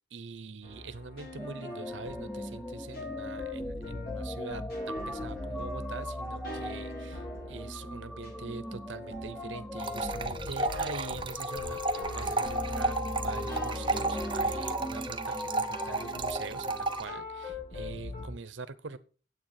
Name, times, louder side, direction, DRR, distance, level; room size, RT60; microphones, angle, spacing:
voice 1, 0.1-19.0, right 4 dB, 80° right, 14 dB, 0.8 m, -44 dB
sound 1, 0.6-18.3, left 2 dB, 55° left, 5.5 m, -41 dB
sound 2, 1.4-17.0, equal, 5° left, 0.5 m, -40 dB
sound 3, 9.8-17.0, right 2 dB, 25° right, 1.0 m, -33 dB
9.4 x 8.4 x 5.7 m, 0.38 s
head